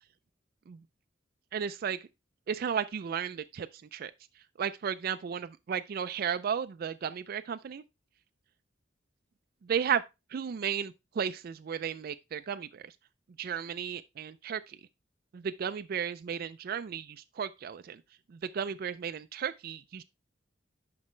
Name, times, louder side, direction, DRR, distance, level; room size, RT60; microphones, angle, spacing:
voice 1, 1.5-2.0 2.5-4.1 4.6-7.8 9.6-10.0 10.3-12.9 13.4-14.8 15.3-18.0 18.3-20.0, right 7 dB, 55° right, 0.3 m, -34 dB
9.7 x 5.4 x 3.1 m
head